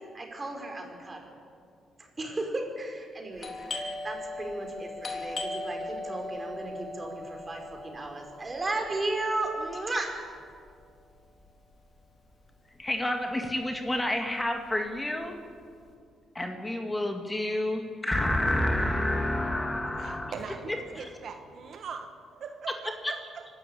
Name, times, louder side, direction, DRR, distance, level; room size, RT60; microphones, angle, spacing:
voice 1, 0.1-1.4 2.2-10.2, right 2 dB, 25° right, 2 dB, 4.8 m, -35 dB
Doorbell, 3.4-12.8 13.0-13.1 13.8-14.1 14.4-15.8, left 2 dB, 40° left, 3.3 m, -39 dB
voice 2, 12.8-15.4 16.3-20.3 20.7-21.1 23.0-23.1, left 1 dB, 15° left, 4 dB, 2.1 m, -29 dB
voice 3, 20.0-23.5, right 5 dB, 60° right, 5 dB, 1.4 m, -41 dB
25.5 x 13.0 x 8.6 m, 2.3 s
cardioid pair, 90°, 0 cm